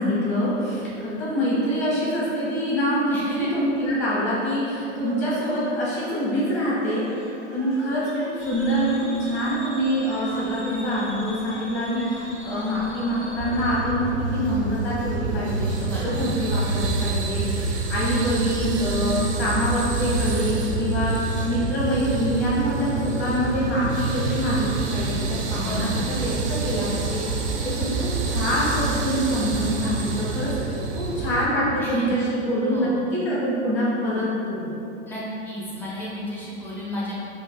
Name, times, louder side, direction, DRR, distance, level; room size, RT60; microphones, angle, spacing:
voice 1, 0.0-7.1 7.5-34.8, equal, 30° left, -7 dB, 1.4 m, -25 dB
voice 2, 3.1-3.5 15.8-16.3 25.6-26.0 31.8-32.1 32.7-33.0 35.1-37.2, equal, 5° left, -8 dB, 0.4 m, -33 dB
sound 1, 5.0-13.9, equal, 55° left, 1.4 m, -44 dB
sound 2, 8.4-13.8, left 1 dB, 70° left, 1.1 m, -42 dB
sound 3, 13.4-31.5, right 3 dB, 85° right, 0.5 m, -27 dB
3.9 x 2.4 x 2.3 m, 2.8 s
hypercardioid pair, 120°, 36 cm